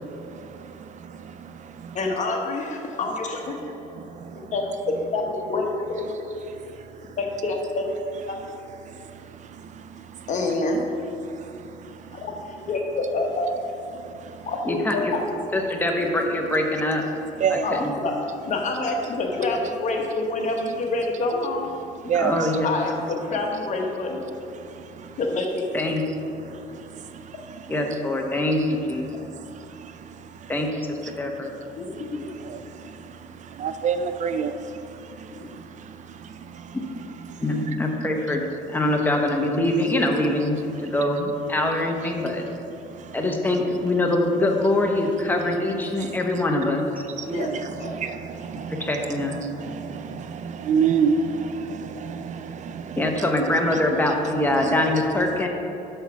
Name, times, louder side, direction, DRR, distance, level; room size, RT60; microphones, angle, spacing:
voice 1, 1.9-3.6 4.5-6.0 7.2-7.9 8.2-8.4 10.3-10.8 12.1-13.5 14.4-15.2 17.6-18.2 18.4-21.7 22.6-24.2 25.2-25.6 31.8-32.3 35.3-35.5 47.3-47.5 47.8-48.0, left 3 dB, 45° left, 1 dB, 1.1 m, -27 dB
voice 2, 14.7-15.1 15.5-17.0 17.5-18.0 22.1-23.0 25.7-26.0 27.7-29.1 30.5-30.7 31.0-31.5 37.4-38.4 38.7-42.4 43.1-46.9 48.8-49.4 53.0-55.5, left 1 dB, 10° left, 1 dB, 0.9 m, -23 dB
voice 3, 22.1-22.5 33.6-34.5 47.4-47.6 48.0-48.1 50.7-51.2, right 7 dB, 45° right, 9 dB, 0.4 m, -22 dB
5.8 x 5.6 x 6.1 m, 2.8 s
cardioid pair, 110°, 17 cm